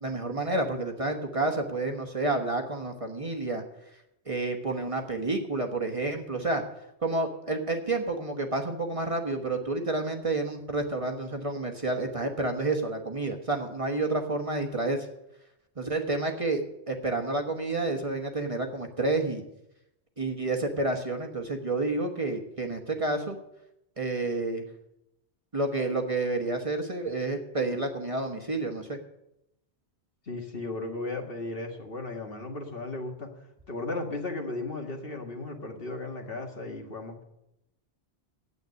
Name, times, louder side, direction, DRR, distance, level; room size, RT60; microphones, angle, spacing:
voice 1, 0.0-3.6 4.3-6.6 7.0-15.1 15.8-16.6 16.9-19.4 20.2-23.4 24.0-24.6 25.5-29.0, right 2 dB, 30° right, 3 dB, 1.3 m, -29 dB
voice 2, 30.3-33.3 33.7-37.2, left 2 dB, 55° left, 2 dB, 2.0 m, -35 dB
9.4 x 8.2 x 9.6 m, 0.85 s
omnidirectional pair, 1.1 m